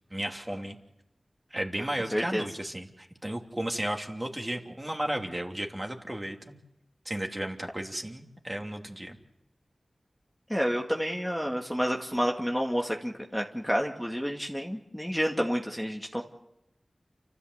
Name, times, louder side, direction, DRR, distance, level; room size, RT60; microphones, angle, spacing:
voice 1, 0.1-0.8 1.5-6.5 7.0-9.2, right 1 dB, 20° right, 2 dB, 3.0 m, -34 dB
voice 2, 2.1-2.4 10.5-16.2, equal, 5° left, 0 dB, 2.2 m, -29 dB
29.0 x 14.0 x 8.1 m, 0.87 s
wide cardioid pair, 45°, 0 cm